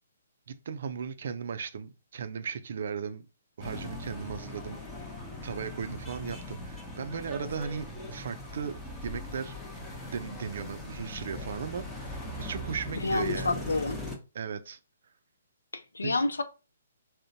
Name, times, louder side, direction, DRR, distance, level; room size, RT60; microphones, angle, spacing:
voice 1, 0.5-3.3 3.6-9.6 10.1-13.6 14.3-14.8 16.0-16.2, right 6 dB, 60° right, 0.4 m, -37 dB
sound 1, 3.6-14.2, left 1 dB, 10° left, 0.8 m, -40 dB
voice 2, 13.0-14.0 15.7-16.4, left 3 dB, 80° left, 0.4 m, -29 dB
3.7 x 2.1 x 2.7 m
figure-of-eight pair, 135°, 0 cm